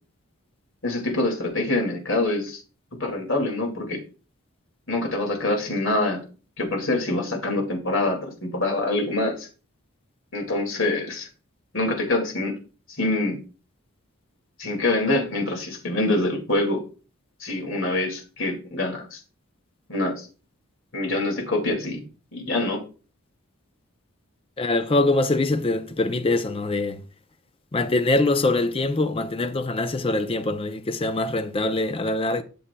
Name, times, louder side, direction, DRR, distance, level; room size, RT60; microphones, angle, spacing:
voice 1, 0.8-2.6 3.0-4.0 4.9-6.2 6.6-9.5 10.3-11.3 11.7-12.5 12.9-13.4 14.6-16.8 17.4-19.2 19.9-20.3 20.9-22.0 22.3-22.8, left 2 dB, 60° left, 2.1 m, -25 dB
voice 2, 24.6-27.0 27.7-32.4, left 2 dB, 25° left, 0.4 m, -23 dB
11.0 x 6.9 x 2.2 m
head